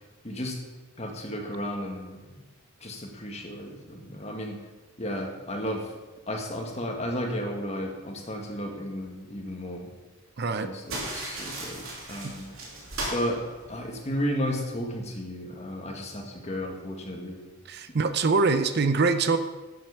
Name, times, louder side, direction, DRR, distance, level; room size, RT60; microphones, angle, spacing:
voice 1, 0.2-0.6 1.0-2.4 2.8-4.6 5.0-5.9 6.3-9.9 10.5-12.5 13.1-13.4 13.7-17.4, equal, 30° left, 1 dB, 1.8 m, -33 dB
voice 2, 10.4-10.7 12.2-12.3 17.7-19.4, right 4 dB, 50° right, 10 dB, 0.6 m, -24 dB
sound 1, 10.9-14.2, right 2 dB, 80° right, 2.9 m, -37 dB
11.5 x 7.7 x 5.7 m, 1.2 s
head